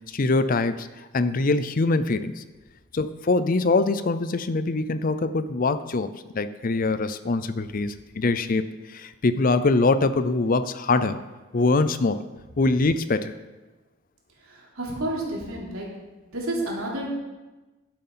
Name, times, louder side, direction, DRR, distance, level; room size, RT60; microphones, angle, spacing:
voice 1, 0.1-0.9 1.1-2.4 2.9-11.2 11.5-12.2 12.6-13.3, left 3 dB, 40° left, 13 dB, 0.5 m, -23 dB
voice 2, 14.4-15.9 16.3-17.1, right 1 dB, 90° right, -3 dB, 3.4 m, -30 dB
12.0 x 7.8 x 5.6 m, 1.2 s
head